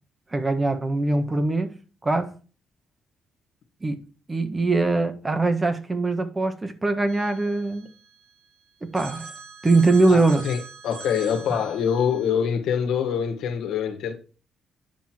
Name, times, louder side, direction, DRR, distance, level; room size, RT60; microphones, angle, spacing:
voice 1, 0.3-1.7 2.0-2.3 3.8-4.0 4.3-7.9 8.8-9.3 9.6-10.5, right 3 dB, 25° right, 1.5 m, -22 dB
Telephone, 7.1-8.5 8.9-12.3, right 4 dB, 90° right, 3.1 m, -43 dB
voice 2, 10.1-14.1, left 7 dB, 80° left, 1.8 m, -25 dB
10.0 x 5.7 x 4.5 m
cardioid pair, 90°, 0 cm